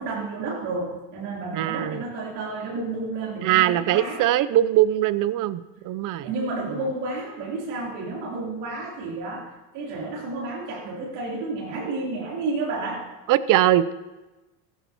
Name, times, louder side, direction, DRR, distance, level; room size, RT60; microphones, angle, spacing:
voice 1, 0.0-4.2 6.2-13.1, right 3 dB, 70° right, -3 dB, 3.7 m, -31 dB
voice 2, 1.5-2.0 3.4-6.3 13.3-13.9, right 13 dB, 50° right, 16 dB, 0.6 m, -21 dB
14.5 x 12.5 x 3.0 m, 1.1 s
supercardioid pair, 85°, 40 cm